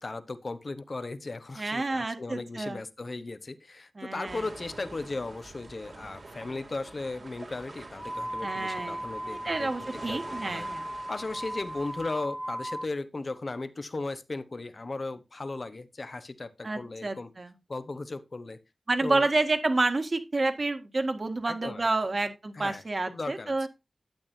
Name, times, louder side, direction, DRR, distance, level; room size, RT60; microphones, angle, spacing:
voice 1, 0.0-9.7 10.1-10.7 11.1-17.3 17.7-18.6 19.0-19.3 21.5-21.9 22.5-23.7, left 3 dB, 55° left, 1.0 m, -37 dB
voice 2, 1.6-2.8 4.0-4.4 8.4-10.8 16.6-17.5 18.9-23.7, right 2 dB, 55° right, 1.8 m, -29 dB
sound 1, 4.3-12.1, right 2 dB, 70° right, 2.5 m, -46 dB
sound 2, 7.9-12.9, equal, 15° right, 0.6 m, -37 dB
11.5 x 8.8 x 2.7 m
wide cardioid pair, 70°, 0 cm